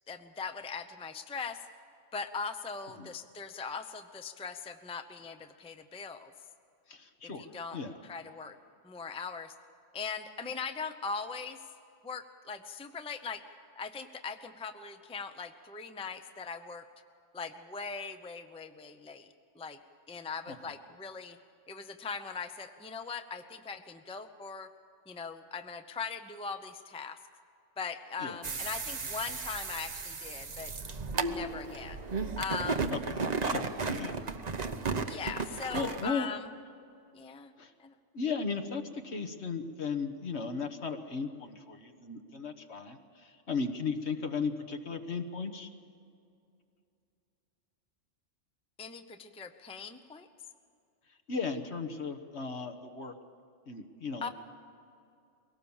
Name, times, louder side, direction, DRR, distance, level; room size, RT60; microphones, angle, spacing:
voice 1, 0.1-1.6 2.1-6.3 7.4-7.8 8.1-8.6 8.8-9.5 9.9-11.6 12.0-13.4 13.8-16.8 17.3-19.8 20.1-21.4 21.7-24.7 25.1-27.2 27.8-30.7 31.2-32.0 32.4-32.9 35.1-36.5 37.1-37.5 37.8-37.9 48.8-50.3 54.2-54.3, left 5 dB, 5° left, 7 dB, 0.7 m, -40 dB
voice 2, 6.9-7.5 7.7-8.0 20.5-20.7 28.2-28.4 32.9-34.1 35.7-36.3 37.6-37.7 38.1-45.7 51.1-53.1 53.7-54.3, left 5 dB, 60° left, 6 dB, 1.6 m, -36 dB
sound 1, 28.4-36.1, right 4 dB, 35° right, 0.9 m, -34 dB
23.0 x 18.0 x 7.2 m, 2.5 s
omnidirectional pair, 1.3 m